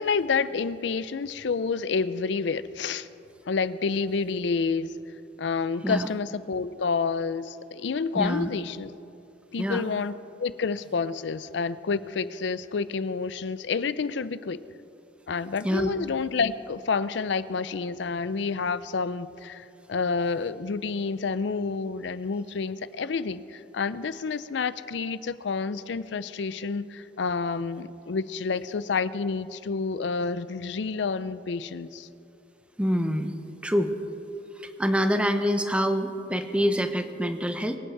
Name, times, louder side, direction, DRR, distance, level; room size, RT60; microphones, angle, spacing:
voice 1, 0.0-3.1 3.5-4.9 5.4-8.9 9.5-10.1 10.4-14.6 15.3-32.1, left 4 dB, 70° left, 16 dB, 0.5 m, -29 dB
voice 2, 8.1-8.5 9.6-9.8 15.6-15.9 32.8-33.3 33.6-33.9 34.6-37.8, equal, 5° right, 8 dB, 0.7 m, -26 dB
23.5 x 9.0 x 4.6 m, 2.7 s
head